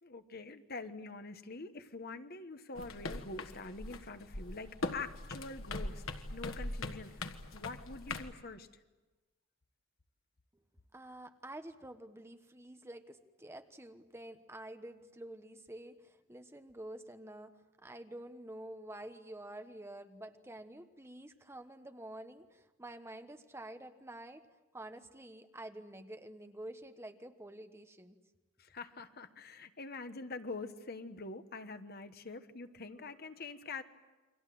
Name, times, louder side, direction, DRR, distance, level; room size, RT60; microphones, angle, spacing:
voice 1, 0.0-6.0 6.3-8.7 28.6-33.8, left 3 dB, 50° left, 9 dB, 1.3 m, -45 dB
sound 1, 2.8-8.3, left 2 dB, 90° left, 1.6 m, -41 dB
voice 2, 10.9-24.5 24.7-28.2, right 1 dB, 15° right, 7 dB, 1.2 m, -49 dB
29.0 x 24.0 x 7.8 m, 1.2 s
head